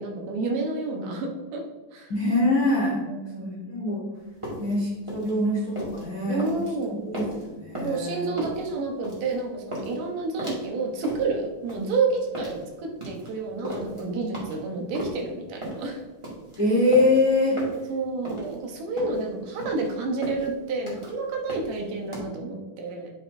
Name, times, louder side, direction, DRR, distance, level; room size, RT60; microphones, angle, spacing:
voice 1, 0.0-1.6 1.9-2.1 3.0-3.7 4.4-4.6 6.3-7.0 7.8-16.0 17.9-23.1, right 3 dB, 75° right, 1 dB, 2.6 m, -30 dB
voice 2, 2.1-3.0 3.4-4.0 4.6-6.4 6.9-8.3 16.6-17.6, left 2 dB, 70° left, -5 dB, 0.9 m, -24 dB
sound 1, 4.2-22.2, right 1 dB, 10° right, 1.5 m, -37 dB
9.6 x 5.8 x 2.7 m, 1.3 s
omnidirectional pair, 3.9 m